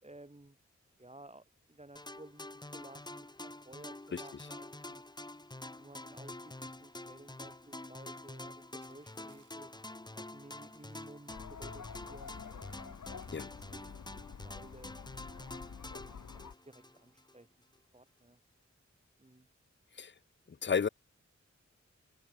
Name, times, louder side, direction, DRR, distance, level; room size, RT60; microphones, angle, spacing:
voice 1, 0.0-0.6 1.0-5.0 5.7-9.7 10.1-12.7 13.6-15.1 16.0-17.5 17.9-18.4 19.2-19.5, right 2 dB, 20° right, 3.5 m, -55 dB
sound 1, 2.0-17.4, left 2 dB, 15° left, 0.9 m, -47 dB
sound 2, 8.8-9.7 10.1-10.3 10.6-11.7 12.1-13.5, right 4 dB, 85° right, 6.7 m, -70 dB
sound 3, 11.3-16.5, left 6 dB, 85° left, 1.2 m, -48 dB
voice 2, 20.5-20.9, left 6 dB, 40° left, 0.5 m, -32 dB
wide cardioid pair, 70°, 29 cm